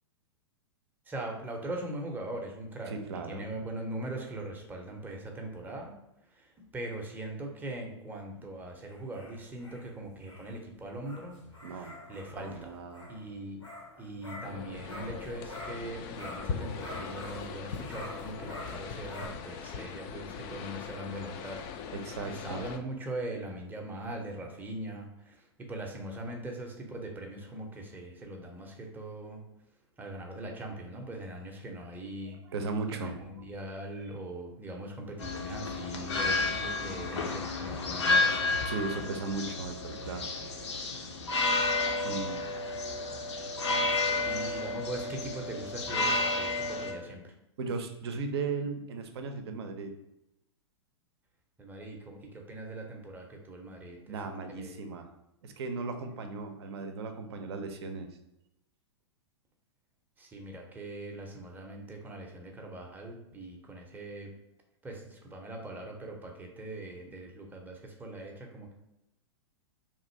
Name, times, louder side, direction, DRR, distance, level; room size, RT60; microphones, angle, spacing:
voice 1, 1.1-5.9 6.3-11.4 11.7-12.8 13.1-13.7 14.0-21.9 22.3-29.4 30.0-32.4 32.9-38.7 43.7-47.4 51.6-54.2 54.6-54.8 60.2-64.3 64.8-68.7, right 1 dB, 10° right, 1 dB, 0.7 m, -41 dB
voice 2, 2.9-3.5 11.6-11.9 12.4-13.1 21.9-22.6 32.5-33.4 34.0-34.1 36.9-37.0 37.3-37.4 37.7-37.8 38.0-38.4 38.7-40.3 42.0-42.5 47.6-49.9 54.1-55.1 55.4-58.1, right 4 dB, 60° right, 6 dB, 0.6 m, -37 dB
sound 1, 8.9-15.9 16.2-19.3, left 1 dB, 90° left, 1.0 m, -47 dB
sound 2, 14.4-22.8, left 6 dB, 35° left, 0.3 m, -40 dB
sound 3, 35.2-46.9, left 3 dB, 70° left, 0.6 m, -31 dB
3.0 x 2.5 x 4.2 m, 0.87 s
figure-of-eight pair, 105°, 15 cm